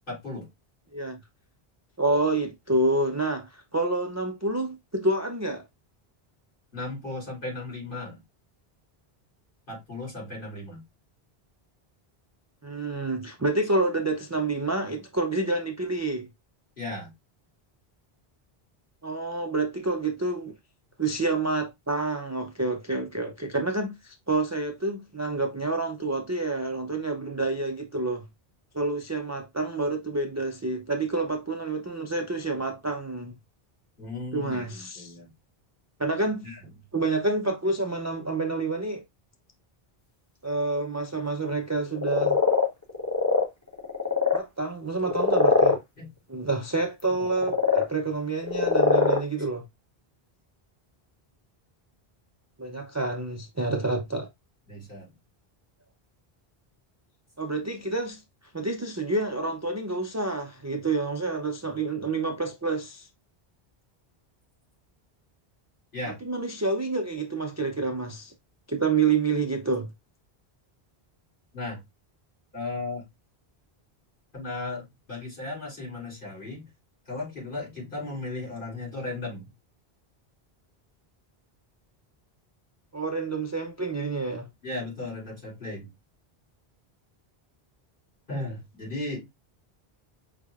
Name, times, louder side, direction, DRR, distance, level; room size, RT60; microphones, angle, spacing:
voice 1, 0.1-0.5 6.7-8.2 9.7-10.8 16.8-17.1 34.0-35.3 36.4-36.7 46.0-46.1 54.7-55.1 65.9-66.2 71.5-71.8 72.5-73.0 74.3-76.7 77.1-79.5 84.6-85.9 88.3-89.2, left 2 dB, 55° left, 3.3 m, -36 dB
voice 2, 2.0-5.6 12.6-16.3 19.0-20.5 21.0-28.3 28.7-33.3 34.3-35.1 36.0-36.5 36.9-39.0 40.4-42.4 44.3-45.8 46.3-49.6 52.6-54.3 57.4-58.2 58.5-63.1 66.2-68.3 68.7-69.9 82.9-84.5, right 3 dB, 25° right, 0.3 m, -28 dB
sound 1, 41.9-43.4 43.7-44.4 45.0-45.8 47.1-47.8 48.4-49.2, left 4 dB, 20° left, 0.8 m, -22 dB
5.4 x 3.4 x 2.3 m
omnidirectional pair, 1.0 m